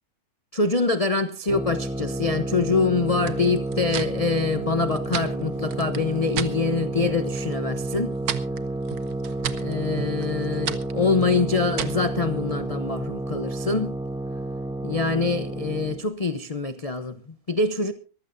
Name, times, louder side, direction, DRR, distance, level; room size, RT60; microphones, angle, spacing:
voice 1, 0.5-8.1 9.6-13.9 14.8-17.2 17.5-17.9, left 3 dB, 30° left, 0.7 m, -25 dB
sound 1, 1.5-16.0, right 2 dB, 5° right, 0.9 m, -30 dB
sound 2, 3.2-6.6 7.0-7.5 7.8-12.1, right 9 dB, 80° right, 1.5 m, -34 dB
23.5 x 15.0 x 2.6 m
omnidirectional pair, 1.6 m